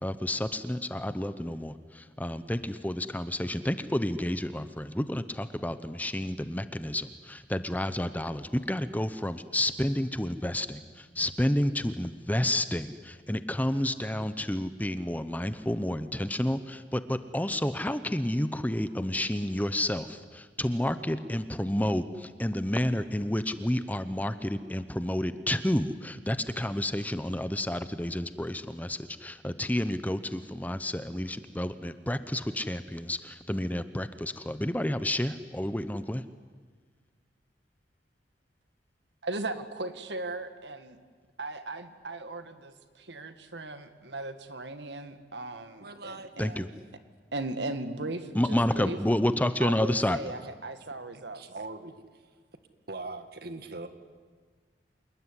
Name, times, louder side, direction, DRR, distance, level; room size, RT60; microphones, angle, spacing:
voice 1, 0.0-36.2 46.4-46.7 48.3-50.2, left 1 dB, 10° left, 12 dB, 0.8 m, -30 dB
voice 2, 39.2-41.0 41.4-46.5 47.3-49.0 49.6-51.4, right 2 dB, 75° right, 9 dB, 1.9 m, -37 dB
voice 3, 45.8-46.7 51.1-52.2 52.9-53.9, right 2 dB, 60° right, 9 dB, 2.0 m, -41 dB
27.5 x 20.0 x 9.9 m, 1.5 s
head